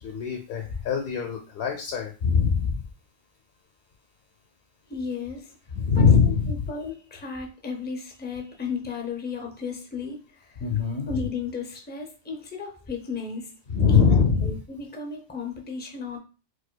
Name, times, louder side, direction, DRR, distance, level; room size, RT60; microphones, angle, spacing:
voice 1, 0.0-2.8 5.7-6.5 10.6-11.1 13.7-14.6, left 6 dB, 65° left, 2 dB, 0.8 m, -22 dB
voice 2, 4.9-5.6 6.0-10.6 11.1-13.5 13.9-16.2, left 5 dB, 15° left, 2 dB, 0.3 m, -34 dB
4.6 x 2.3 x 2.2 m, 0.33 s
omnidirectional pair, 1.1 m